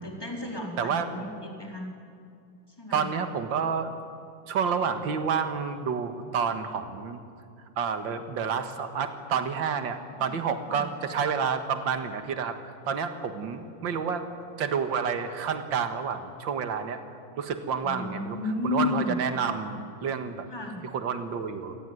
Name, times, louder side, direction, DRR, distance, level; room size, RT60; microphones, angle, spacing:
voice 1, 0.0-1.9 2.8-3.0 10.2-10.3 10.6-10.8 13.6-13.9 17.8-19.1 20.5-20.8, left 2 dB, 10° left, 0 dB, 4.1 m, -33 dB
voice 2, 0.8-1.1 2.9-3.9 4.5-7.2 7.8-12.6 12.9-14.3 14.6-17.0 17.4-18.4 18.6-20.5 20.8-21.8, right 6 dB, 70° right, 8 dB, 2.2 m, -29 dB
28.0 x 17.5 x 9.6 m, 2.4 s
omnidirectional pair, 2.2 m